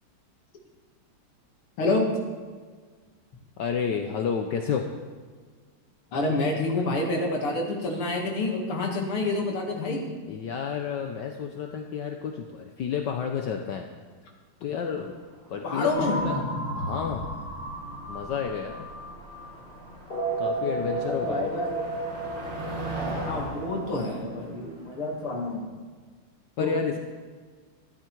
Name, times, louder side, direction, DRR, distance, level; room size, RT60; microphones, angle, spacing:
voice 1, 3.6-4.9 10.3-13.9 14.6-15.2 15.5-16.4 16.8-17.3 18.1-18.9 20.4-21.6 26.6-27.0, left 7 dB, 65° left, 4 dB, 1.2 m, -30 dB
voice 2, 6.1-10.1 15.6-16.2 20.6-21.8 23.2-25.6 26.6-26.8, left 2 dB, 80° left, 0 dB, 2.9 m, -28 dB
Motor vehicle (road), 15.2-25.5, right 1 dB, 80° right, 3.5 m, -40 dB
sound 1, 15.9-19.5 19.9-24.3, right 2 dB, 45° left, 3.9 m, -33 dB
13.0 x 12.5 x 4.6 m, 1.5 s
omnidirectional pair, 2.4 m